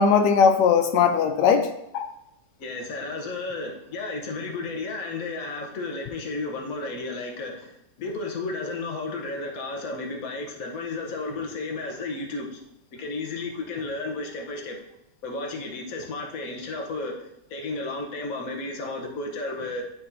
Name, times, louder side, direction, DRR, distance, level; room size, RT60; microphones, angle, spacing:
voice 1, 0.0-2.1, left 6 dB, 90° left, 7 dB, 1.2 m, -19 dB
voice 2, 2.6-12.6 13.0-14.8 15.2-19.8, left 3 dB, 60° left, 2 dB, 1.4 m, -33 dB
11.0 x 4.2 x 2.7 m, 0.82 s
omnidirectional pair, 1.8 m